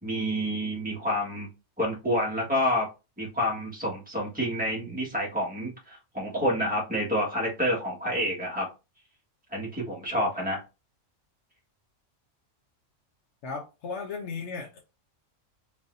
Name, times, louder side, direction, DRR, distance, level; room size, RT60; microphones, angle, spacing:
voice 1, 0.0-1.5 1.8-2.9 3.2-8.7 9.5-10.6, equal, 5° right, 1.6 m, -28 dB
voice 2, 13.4-14.8, left 4 dB, 65° left, 1.0 m, -35 dB
4.1 x 3.6 x 2.6 m
omnidirectional pair, 1.3 m